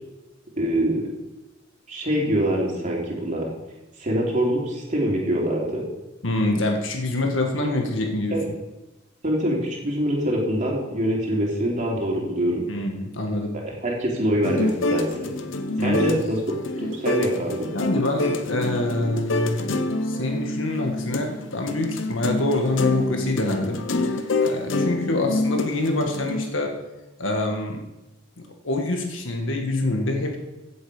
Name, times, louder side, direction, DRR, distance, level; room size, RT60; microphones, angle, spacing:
voice 1, 0.6-1.1 1.9-3.4 4.0-5.8 8.3-8.4 9.2-12.6 13.8-15.3 15.8-16.4 16.8-17.7, right 1 dB, 40° right, -3 dB, 3.3 m, -24 dB
voice 2, 6.2-8.4 12.7-13.6 15.8-16.2 17.7-19.7 20.0-26.8 27.2-27.8 28.6-30.4, left 2 dB, 90° left, 3 dB, 1.7 m, -26 dB
sound 1, 14.4-26.5, left 2 dB, 75° left, 0.8 m, -27 dB
15.5 x 7.8 x 5.0 m, 1.1 s
head